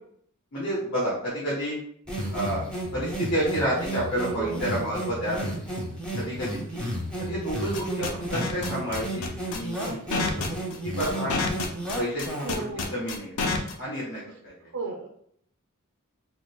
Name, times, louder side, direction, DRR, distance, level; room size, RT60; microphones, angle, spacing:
voice 1, 0.5-1.7 2.3-2.6 2.9-5.4 6.2-6.8 7.2-10.4 10.8-11.5 11.9-12.6 12.9-13.3 13.8-14.5, equal, 55° left, -9 dB, 1.3 m, -30 dB
sound 1, 2.1-12.7, right 1 dB, 5° left, 0.7 m, -33 dB
sound 2, 7.7-13.7, left 4 dB, 75° left, 0.5 m, -28 dB
voice 2, 12.4-12.9 14.7-15.1, right 4 dB, 65° right, 1 dB, 0.4 m, -33 dB
3.8 x 2.8 x 2.2 m, 0.66 s
head